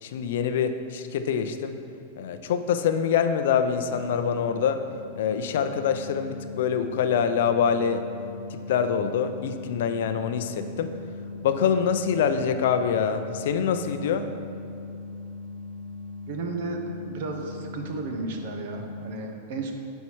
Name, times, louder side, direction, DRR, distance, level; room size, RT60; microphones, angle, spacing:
voice 1, 0.0-1.8 2.2-4.9 5.2-8.1 8.5-10.9 11.4-14.3, left 7 dB, 60° left, 9 dB, 0.5 m, -25 dB
sound 1, 3.9-19.1, left 3 dB, ahead, 1.4 m, -39 dB
voice 2, 16.3-19.7, right 3 dB, 50° right, 3 dB, 1.0 m, -33 dB
9.5 x 4.5 x 4.6 m, 2.7 s
supercardioid pair, 165°, 0 cm